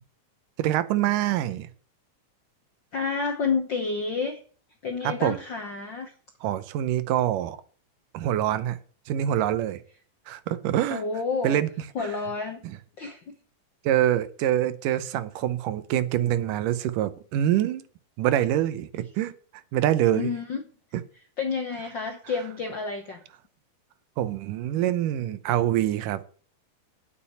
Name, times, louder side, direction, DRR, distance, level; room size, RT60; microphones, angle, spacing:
voice 1, 0.6-1.7 5.0-5.4 6.4-7.6 8.1-8.8 9.1-9.8 10.3-11.0 11.4-11.7 13.9-17.8 18.2-19.3 19.7-20.3 24.2-26.3, right 12 dB, 80° right, 2.3 m, -25 dB
voice 2, 2.9-4.4 4.8-6.1 10.9-11.6 11.9-12.6 13.0-13.4 20.1-20.6 21.4-23.2, left 4 dB, 65° left, 1.1 m, -29 dB
8.6 x 7.5 x 8.7 m
omnidirectional pair, 3.8 m